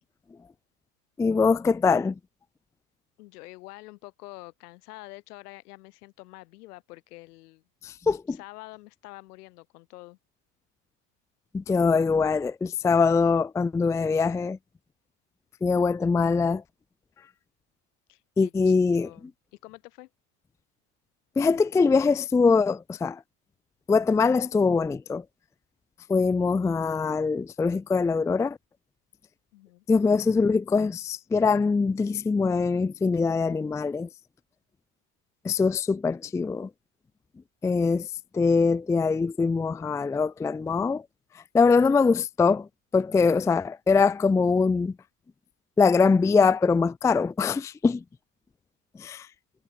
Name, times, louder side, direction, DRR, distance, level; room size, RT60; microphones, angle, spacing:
voice 1, 1.2-2.1 7.8-8.4 11.5-14.6 15.6-16.6 18.4-19.1 21.4-23.2 23.9-25.2 26.1-28.6 29.9-34.1 35.4-36.7 37.6-38.1 38.3-41.0 41.5-42.7 42.9-44.9 45.8-48.0 49.0-49.3, left 4 dB, 5° left, 0.5 m, -23 dB
voice 2, 3.2-7.6 8.3-10.2 18.1-20.1 29.5-29.8, left 20 dB, 70° left, 5.3 m, -47 dB
supercardioid pair, 145°, 48 cm